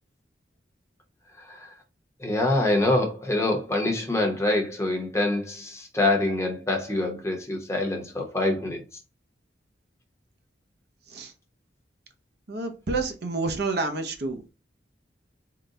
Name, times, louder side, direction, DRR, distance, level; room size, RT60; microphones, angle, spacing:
voice 1, 1.4-1.7 2.2-8.8, left 2 dB, 15° left, 0.9 m, -25 dB
voice 2, 12.5-14.5, right 3 dB, 60° right, 0.7 m, -29 dB
3.8 x 2.2 x 3.7 m
head